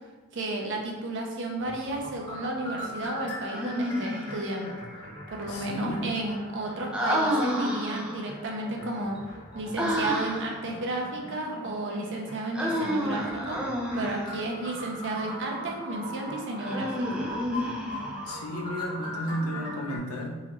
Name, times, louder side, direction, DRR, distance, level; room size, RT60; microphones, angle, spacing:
voice 1, 0.3-4.8 5.3-9.2 9.5-13.7 13.9-17.2, right 2 dB, 60° right, 1 dB, 0.7 m, -33 dB
sound 1, 1.6-20.0, equal, 20° left, 1.2 m, -40 dB
Human voice, 3.5-4.4 6.9-8.3 9.8-10.6 12.5-14.3 16.6-18.2, equal, 5° right, 0.5 m, -29 dB
voice 2, 5.5-6.2 18.3-20.4, equal, 85° left, 1 dB, 0.7 m, -33 dB
3.9 x 2.9 x 3.1 m, 1.2 s
head